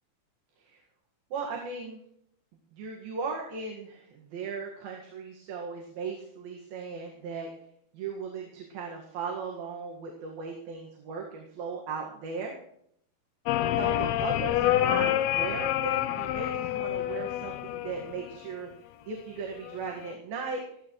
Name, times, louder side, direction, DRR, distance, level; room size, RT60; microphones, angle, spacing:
voice 1, 1.3-2.0 2.7-7.5 7.9-12.6 13.8-18.7 19.1-20.6, right 5 dB, 65° right, 0 dB, 3.6 m, -37 dB
sound 1, 13.5-18.5 19.6-20.2, left 12 dB, 80° left, 2.6 m, -28 dB
21.5 x 14.5 x 3.2 m, 0.69 s
omnidirectional pair, 4.6 m